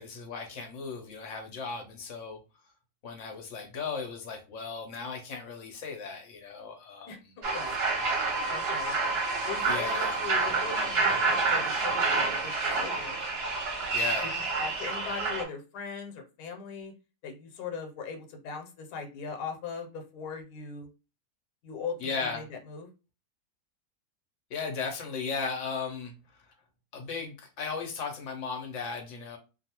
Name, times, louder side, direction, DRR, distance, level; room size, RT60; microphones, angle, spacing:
voice 1, 0.0-2.4 3.0-7.1 9.7-10.2 13.9-14.3 22.0-22.4 24.5-26.4 26.9-29.4, left 5 dB, 65° left, 0.8 m, -36 dB
sound 1, 7.4-15.4, right 3 dB, 50° right, 0.8 m, -28 dB
voice 2, 8.5-9.0 9.5-12.5 12.8-13.2 14.6-16.9 17.2-20.9 21.6-22.9, left 5 dB, 85° left, 1.2 m, -39 dB
2.6 x 2.3 x 2.8 m
omnidirectional pair, 1.6 m